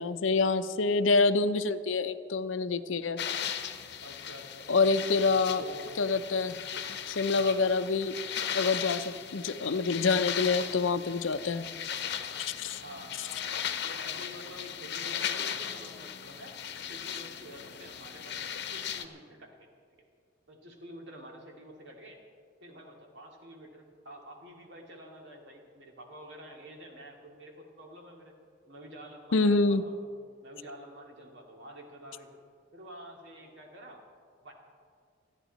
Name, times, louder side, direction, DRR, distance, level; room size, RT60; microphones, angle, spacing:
voice 1, 0.0-3.2 4.7-5.6 6.0-6.7 7.1-8.1 8.5-11.7 12.4-12.8 29.3-29.8, left 4 dB, 85° left, 12 dB, 0.7 m, -27 dB
sound 1, 3.2-19.1, left 8 dB, 60° left, 0.9 m, -37 dB
voice 2, 4.0-4.7 5.3-5.9 7.3-7.7 12.8-13.5 13.8-16.5 16.9-19.6 20.5-22.2 22.6-28.4 28.7-30.0 30.4-32.4 32.7-34.0 34.4-34.5, equal, 65° right, 1 dB, 2.5 m, -48 dB
28.0 x 10.0 x 4.1 m, 2.2 s
head